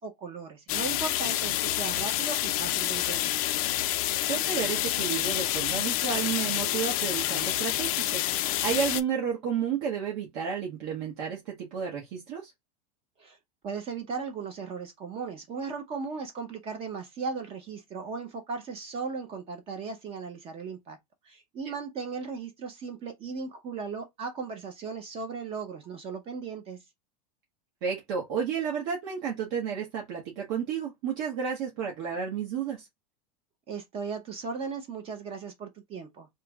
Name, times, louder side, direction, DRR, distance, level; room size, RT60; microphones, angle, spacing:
voice 1, 0.0-3.3 13.2-13.4 13.6-21.0 21.2-26.8 33.7-36.3, right 5 dB, 30° right, 0.6 m, -37 dB
sound 1, 0.7-9.0, left 15 dB, 60° left, 0.4 m, -28 dB
voice 2, 4.3-12.5 27.8-32.9, right 7 dB, 55° right, 1.0 m, -32 dB
3.1 x 2.0 x 3.4 m
supercardioid pair, 155°, 20 cm